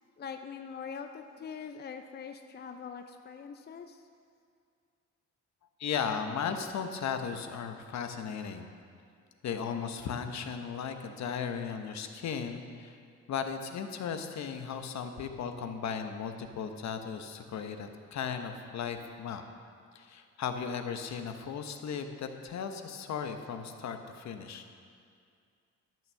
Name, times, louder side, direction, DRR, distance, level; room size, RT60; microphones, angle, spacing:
voice 1, 0.2-4.0, left 6 dB, 35° left, 6 dB, 0.6 m, -43 dB
voice 2, 5.8-8.7 9.4-13.0 13.3-19.4 19.9-24.6, left 7 dB, 65° left, 6 dB, 1.0 m, -36 dB
12.0 x 6.2 x 6.9 m, 2.3 s
cardioid pair, 90°, 30 cm